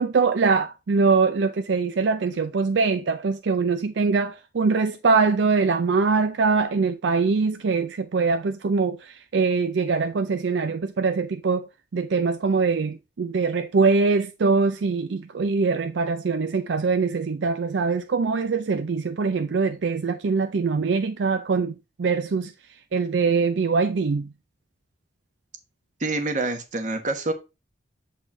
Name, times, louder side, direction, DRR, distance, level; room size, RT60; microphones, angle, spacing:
voice 1, 0.0-11.7 11.9-22.5 22.9-24.3, right 4 dB, 70° right, 0.4 m, -23 dB
voice 2, 26.0-27.3, right 2 dB, 40° right, 1.2 m, -26 dB
7.4 x 4.1 x 3.8 m
head